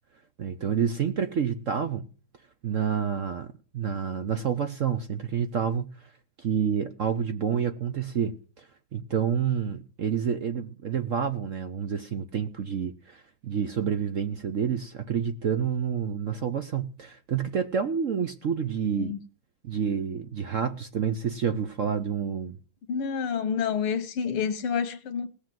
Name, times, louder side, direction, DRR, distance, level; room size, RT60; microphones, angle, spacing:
voice 1, 0.4-2.1 2.6-5.9 6.4-8.7 8.9-19.1 19.6-22.6, right 7 dB, 60° right, 0.8 m, -28 dB
voice 2, 22.9-25.3, left 7 dB, 90° left, 2.0 m, -28 dB
18.0 x 6.6 x 7.7 m
omnidirectional pair, 2.3 m